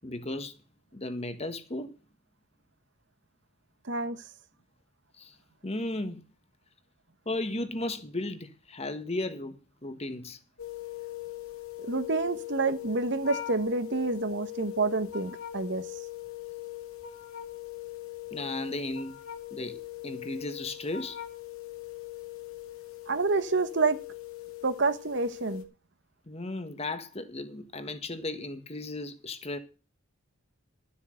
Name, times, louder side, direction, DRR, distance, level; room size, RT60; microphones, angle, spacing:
voice 1, 0.0-0.6 0.9-1.9 5.2-5.3 5.6-6.2 7.2-10.4 18.3-19.2 19.5-21.2 26.3-29.6, left 2 dB, 30° left, 1.4 m, -35 dB
voice 2, 3.8-4.2 11.8-15.9 23.1-24.0 24.6-25.6, right 3 dB, 55° right, 1.2 m, -28 dB
sound 1, 10.6-25.6, left 14 dB, 85° left, 2.2 m, -41 dB
12.5 x 7.4 x 6.4 m
head